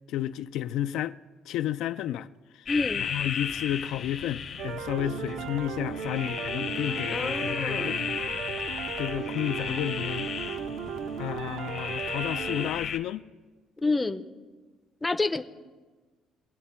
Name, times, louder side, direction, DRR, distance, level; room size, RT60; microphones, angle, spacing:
voice 1, 0.1-1.1 1.5-2.3 3.0-8.1 9.0-10.3 11.2-13.3, left 12 dB, 70° left, 0.3 m, -32 dB
sound 1, 2.7-13.0, left 7 dB, 40° left, 0.8 m, -34 dB
voice 2, 2.7-3.1 7.1-7.9 13.8-14.3 15.0-15.4, left 3 dB, 10° left, 0.5 m, -28 dB
sound 2, 4.6-12.7, right 7 dB, 80° right, 0.8 m, -36 dB
22.5 x 8.2 x 4.3 m
cardioid pair, 160°, 0 cm